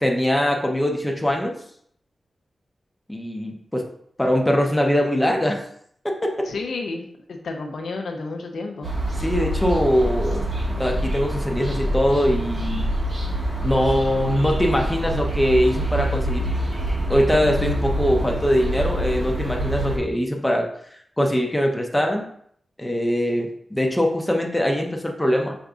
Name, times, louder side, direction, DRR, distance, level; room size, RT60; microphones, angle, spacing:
voice 1, 0.0-1.5 3.1-3.8 4.2-5.6 6.0-6.5 9.2-10.5 10.8-12.8 13.6-16.5 17.1-20.7 21.2-22.2 22.8-25.6, equal, 10° left, 1 dB, 0.7 m, -22 dB
voice 2, 6.4-8.9, left 3 dB, 90° left, 3 dB, 0.7 m, -31 dB
sound 1, 8.8-20.0, right 1 dB, 65° right, 1.5 m, -26 dB
5.1 x 3.8 x 2.4 m, 0.66 s
cardioid pair, 75°, 0 cm